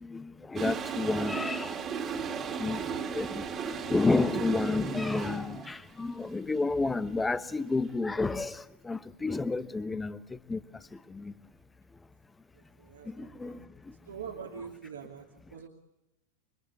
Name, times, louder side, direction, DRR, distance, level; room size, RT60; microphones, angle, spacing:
voice 1, 0.5-1.7 2.6-2.8 3.1-3.3 3.9-8.5 8.9-10.2 10.5-10.6 13.2-13.5, left 3 dB, 10° left, 1.1 m, -30 dB
Toilet flush, 0.6-5.8, right 6 dB, 25° right, 2.5 m, -35 dB
voice 2, 12.8-13.6 14.1-15.2 15.5-15.7, right 7 dB, 65° right, 2.6 m, -43 dB
27.5 x 24.5 x 8.4 m
figure-of-eight pair, 90°, 0 cm